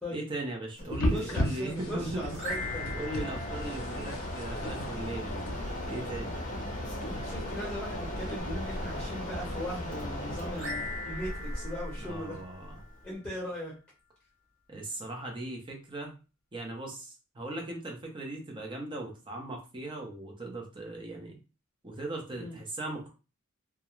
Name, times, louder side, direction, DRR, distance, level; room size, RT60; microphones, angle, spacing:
voice 1, 0.1-2.4 2.9-5.5 5.9-6.3 12.0-12.8 14.7-16.2 16.5-21.4 21.8-23.1, right 2 dB, 25° right, 1 dB, 0.6 m, -38 dB
Mechanisms, 0.8-13.1, left 1 dB, 40° left, 0.6 m, -38 dB
sound 1, 0.9-8.4, left 1 dB, 90° left, 0.5 m, -37 dB
voice 2, 1.1-2.9 7.0-12.4 13.0-13.7 22.3-22.6, left 1 dB, 10° left, -6 dB, 0.9 m, -39 dB
sound 2, 2.3-4.8 10.5-13.1, left 2 dB, 60° right, 1.0 m, -41 dB
2.4 x 2.0 x 3.0 m, 0.32 s
head